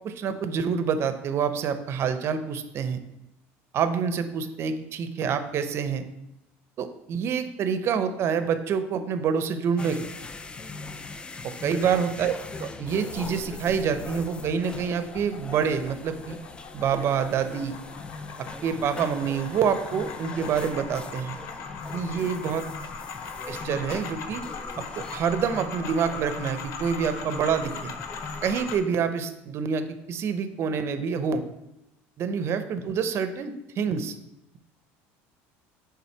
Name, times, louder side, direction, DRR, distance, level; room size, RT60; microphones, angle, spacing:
voice 1, 0.0-3.0 3.7-6.0 6.8-10.0 11.4-12.3 12.8-16.4 16.7-17.7 18.4-21.4 21.9-22.6 23.5-24.4 24.8-27.9 28.4-31.4 32.2-34.1, right 7 dB, 45° right, 10 dB, 0.6 m, -27 dB
sound 1, 9.8-28.8, left 3 dB, 15° left, 0.3 m, -41 dB
sound 2, 13.1-28.8, left 5 dB, 60° left, 0.7 m, -40 dB
5.6 x 3.7 x 4.5 m, 0.87 s
supercardioid pair, 110°, 6 cm